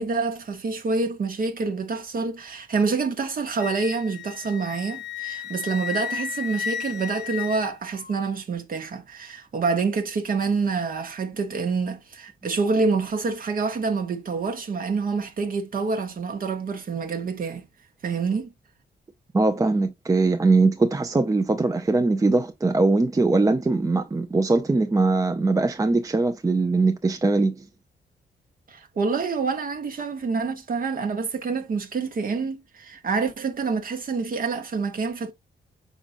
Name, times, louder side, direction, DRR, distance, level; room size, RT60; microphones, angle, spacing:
voice 1, 0.0-17.6 18.0-18.5 28.7-35.3, right 4 dB, 50° right, 0.9 m, -27 dB
Wind instrument woodwind instrument, 3.6-8.2, left 8 dB, 75° left, 0.5 m, -33 dB
voice 2, 19.3-27.6, right 3 dB, 20° right, 0.4 m, -21 dB
5.1 x 3.7 x 2.5 m
cardioid pair, 85°, 18 cm